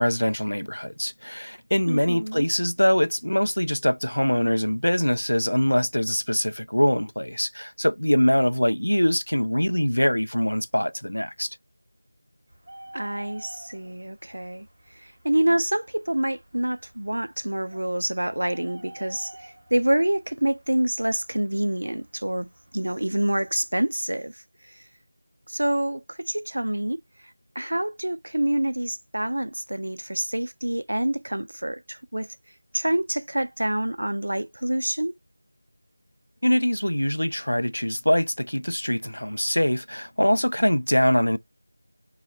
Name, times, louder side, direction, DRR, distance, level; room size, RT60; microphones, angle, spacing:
voice 1, 0.0-11.5 36.4-41.4, equal, 85° left, 0.4 m, -23 dB
voice 2, 1.9-2.5 12.9-14.7 15.0-24.3 25.5-27.0 27.6-32.3 32.7-35.1, right 1 dB, 70° right, 0.4 m, -27 dB
Bird, 12.5-23.7, right 1 dB, 35° right, 1.9 m, -50 dB
4.8 x 3.9 x 2.3 m
figure-of-eight pair, 170°, 0 cm